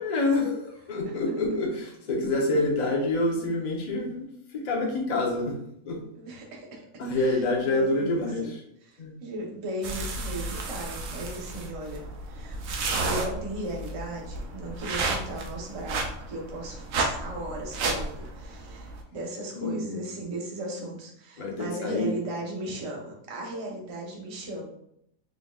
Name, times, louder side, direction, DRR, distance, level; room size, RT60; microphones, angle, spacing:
voice 1, 0.0-4.3 4.5-5.6 5.9-6.0 7.0-8.6 9.0-9.1 19.6-20.0 21.4-22.1, left 2 dB, 40° left, -1 dB, 0.6 m, -27 dB
voice 2, 6.1-6.8 7.1-8.5 8.8-24.6, right 1 dB, 35° right, -1 dB, 0.5 m, -37 dB
sound 1, 9.8-19.0, right 3 dB, 65° right, 0.9 m, -32 dB
3.7 x 3.6 x 2.3 m, 0.73 s
omnidirectional pair, 1.7 m